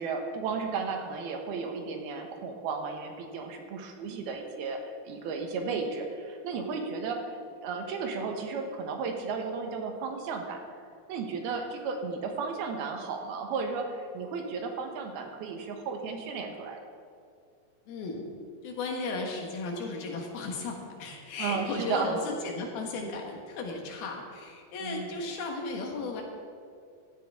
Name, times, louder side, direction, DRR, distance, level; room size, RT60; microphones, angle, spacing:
voice 1, 0.0-4.8 5.1-7.3 7.6-10.6 11.1-16.8 21.4-22.1 24.8-25.2, right 5 dB, 75° right, 4 dB, 3.0 m, -34 dB
voice 2, 17.9-18.3 18.6-26.2, left 3 dB, 75° left, 1 dB, 3.5 m, -35 dB
15.5 x 13.5 x 3.6 m, 2.3 s
omnidirectional pair, 4.5 m